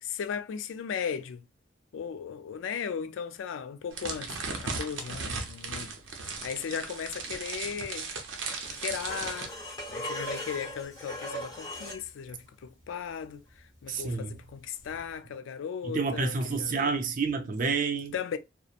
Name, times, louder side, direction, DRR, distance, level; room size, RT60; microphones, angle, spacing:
voice 1, 0.0-1.4 1.9-5.9 6.4-8.1 8.7-9.5 9.9-17.0 18.1-18.4, left 7 dB, 90° left, 0.3 m, -37 dB
sound 1, 3.9-9.5, right 4 dB, 85° right, 0.6 m, -37 dB
sound 2, 8.5-12.1 15.0-15.1, equal, 25° left, 1.2 m, -39 dB
voice 2, 13.9-14.4 15.8-18.1, right 4 dB, 45° right, 0.4 m, -29 dB
2.8 x 2.0 x 2.4 m
head